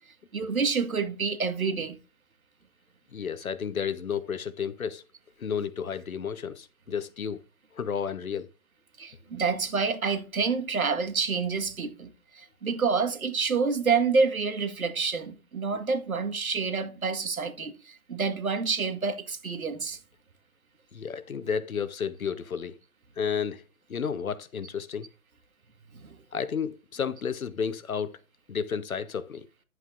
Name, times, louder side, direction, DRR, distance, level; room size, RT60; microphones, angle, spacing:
voice 1, 0.3-2.0 9.0-20.0 25.9-26.2, right 5 dB, 85° right, 1.8 m, -28 dB
voice 2, 3.1-5.0 5.4-7.4 7.7-8.5 20.9-22.8 23.2-25.1 26.3-28.2 28.5-29.5, left 7 dB, 80° left, 1.2 m, -32 dB
11.0 x 8.1 x 2.6 m
hypercardioid pair, 165°, 42 cm